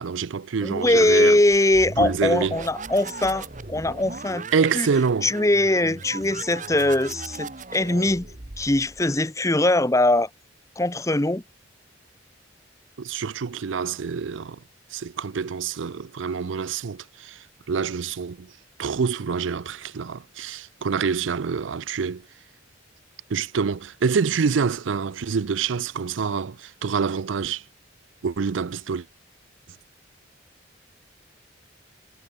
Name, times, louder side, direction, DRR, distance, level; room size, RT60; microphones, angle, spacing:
voice 1, 0.0-1.4 2.0-2.6 4.5-5.3 13.0-14.6 14.9-18.5 18.8-22.2 23.3-27.6 28.2-29.1, right 5 dB, 80° right, 0.5 m, -26 dB
voice 2, 0.6-4.5 4.7-4.9 5.2-8.2 8.6-10.3 10.8-11.4, left 1 dB, 15° left, 0.8 m, -21 dB
sound 1, 1.5-9.1, right 3 dB, 40° right, 1.5 m, -38 dB
head